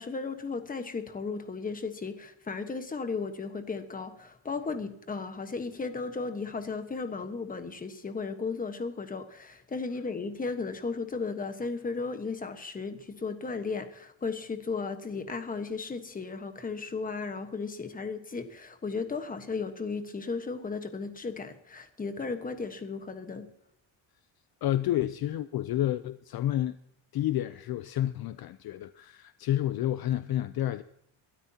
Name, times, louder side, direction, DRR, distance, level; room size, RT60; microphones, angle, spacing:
voice 1, 0.0-23.5, left 4 dB, 20° left, 1.2 m, -35 dB
voice 2, 24.6-26.8 27.1-30.8, left 12 dB, 55° left, 0.6 m, -30 dB
23.0 x 12.5 x 2.8 m
cardioid pair, 160°, 46 cm